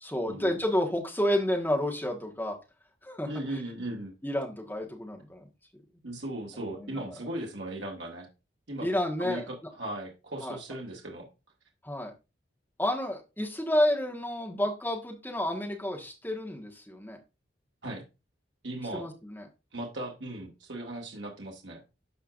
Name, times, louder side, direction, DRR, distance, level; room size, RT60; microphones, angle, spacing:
voice 1, 0.0-2.6 3.0-3.3 4.2-5.4 6.7-7.0 8.8-9.5 10.4-10.6 11.8-12.1 12.8-17.2 18.9-19.5, left 1 dB, 10° left, 2 dB, 1.4 m, -30 dB
voice 2, 3.3-4.1 6.0-8.3 8.7-8.9 9.2-11.3 17.8-18.0 18.6-19.1 19.7-21.8, right 1 dB, 70° right, 0 dB, 1.8 m, -37 dB
13.0 x 4.6 x 2.5 m, 0.27 s
head